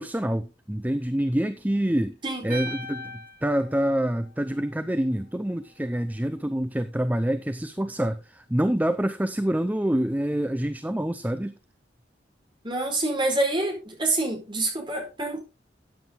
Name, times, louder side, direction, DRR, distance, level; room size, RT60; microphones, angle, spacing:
voice 1, 0.0-2.2 2.4-11.5, right 1 dB, 10° right, 0.6 m, -26 dB
sound 1, 2.5-4.8, equal, 50° right, 8.0 m, -39 dB
voice 2, 12.6-15.4, right 2 dB, 25° right, 4.5 m, -26 dB
14.0 x 9.2 x 3.7 m
head